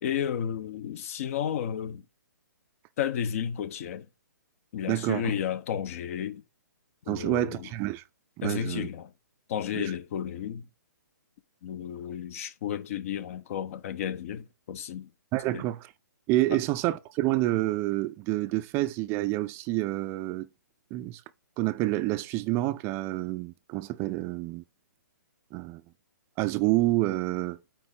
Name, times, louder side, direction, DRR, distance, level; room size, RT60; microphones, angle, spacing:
voice 1, 0.0-2.0 3.0-4.1 4.7-6.4 7.1-7.7 8.4-9.1 9.5-10.7 11.6-15.1 15.5-15.7 16.5-16.6, left 9 dB, 45° left, 0.9 m, -32 dB
voice 2, 4.9-5.2 7.1-8.0 8.4-8.9 9.7-9.8 15.3-15.9 16.3-20.5 20.9-21.2 21.6-24.6 25.5-25.8 26.4-27.6, right 17 dB, 25° right, 0.5 m, -28 dB
9.4 x 3.7 x 3.8 m
hypercardioid pair, 135°, 10 cm